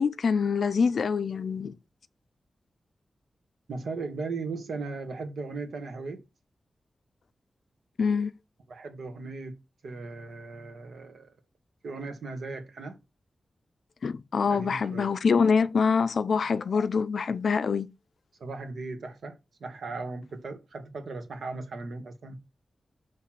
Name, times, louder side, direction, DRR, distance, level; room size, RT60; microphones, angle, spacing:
voice 1, 0.0-1.8 8.0-8.3 14.0-17.9, left 5 dB, 65° left, 0.4 m, -25 dB
voice 2, 3.7-6.2 8.7-9.6 9.8-11.3 11.8-13.0 14.5-15.1 18.4-22.4, right 3 dB, 75° right, 1.3 m, -37 dB
6.1 x 3.2 x 5.8 m
wide cardioid pair, 160°, 0 cm